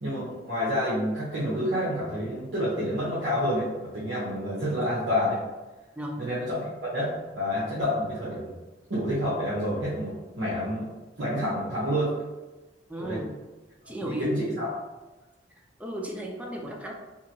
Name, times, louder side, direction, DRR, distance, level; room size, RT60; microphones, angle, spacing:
voice 1, 0.0-5.4 6.2-8.5 8.9-10.9 11.2-12.1 13.0-13.2 14.0-14.7, equal, 75° right, -8 dB, 0.8 m, -28 dB
voice 2, 12.9-13.3 13.9-14.4 15.8-16.9, equal, 5° right, 0 dB, 0.3 m, -34 dB
2.8 x 2.5 x 2.7 m, 1.2 s
head